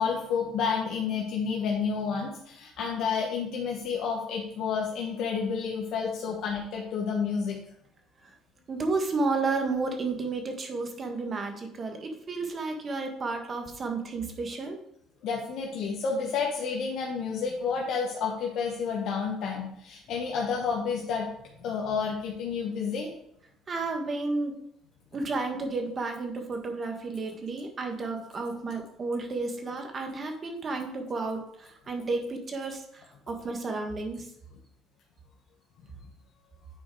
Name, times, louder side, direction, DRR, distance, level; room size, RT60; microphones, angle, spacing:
voice 1, 0.0-7.6 15.2-21.3 21.6-23.1, left 5 dB, 65° left, -1 dB, 1.3 m, -30 dB
voice 2, 8.7-14.8 23.7-24.5 25.1-32.8 33.3-34.2, right 3 dB, 35° right, 4 dB, 1.6 m, -32 dB
9.1 x 4.5 x 4.7 m, 0.72 s
cardioid pair, 110°, 0 cm